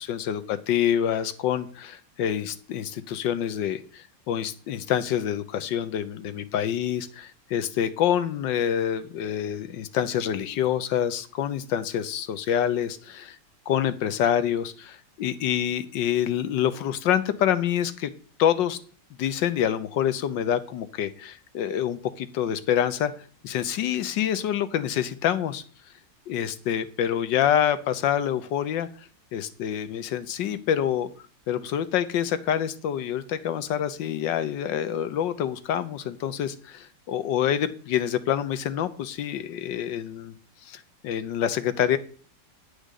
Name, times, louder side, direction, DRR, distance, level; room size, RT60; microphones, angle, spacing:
voice 1, 0.0-13.4 13.7-18.1 18.4-18.8 19.2-23.1 23.4-25.6 26.3-28.9 29.3-31.1 31.5-40.4 40.6-42.0, left 10 dB, 75° left, 12 dB, 1.5 m, -26 dB
10.5 x 5.1 x 8.2 m, 0.42 s
omnidirectional pair, 2.0 m